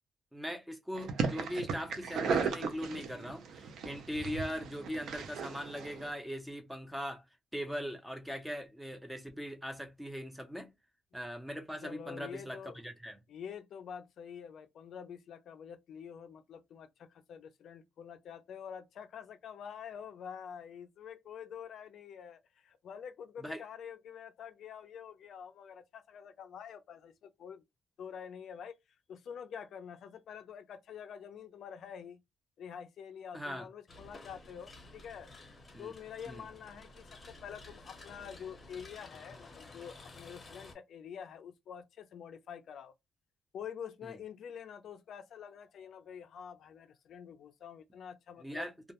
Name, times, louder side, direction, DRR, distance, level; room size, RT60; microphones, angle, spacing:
voice 1, 0.3-7.2 7.5-10.7 11.1-13.2 23.4-23.6 33.3-33.7 35.7-35.9 36.3-36.5 44.0-44.1 48.4-48.9, equal, 5° right, 0.5 m, -40 dB
sound 1, 1.0-6.1, right 5 dB, 70° right, 0.4 m, -36 dB
voice 2, 11.8-12.8 13.3-27.6 28.0-28.8 29.1-32.2 32.6-35.3 35.8-42.9 43.5-48.7, left 8 dB, 65° left, 0.3 m, -47 dB
sound 2, 33.9-40.7, left 2 dB, 30° left, 0.7 m, -53 dB
2.2 x 2.0 x 2.8 m
cardioid pair, 140°, 0 cm